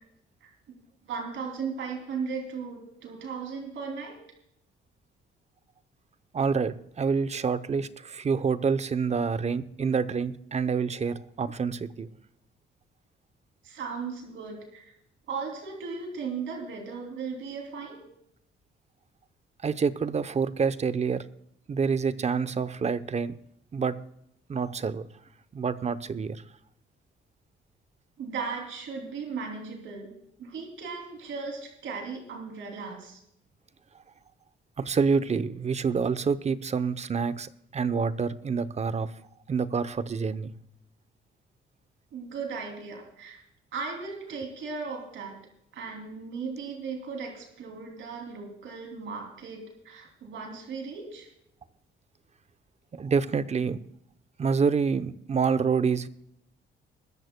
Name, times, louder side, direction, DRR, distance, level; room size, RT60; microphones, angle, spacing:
voice 1, 0.4-0.8 1.0-4.2 13.6-14.9 15.3-18.0 28.2-30.1 30.4-33.2 42.1-43.4 43.7-45.4 45.7-51.3, right 5 dB, 70° right, 2 dB, 3.0 m, -37 dB
voice 2, 6.3-12.1 19.6-21.3 21.7-23.4 23.7-24.0 24.5-25.1 25.5-26.4 34.8-39.1 39.5-40.5 52.9-53.8 54.4-56.1, right 5 dB, 35° right, 15 dB, 0.8 m, -27 dB
22.0 x 14.0 x 2.2 m, 0.76 s
cardioid pair, 90°, 20 cm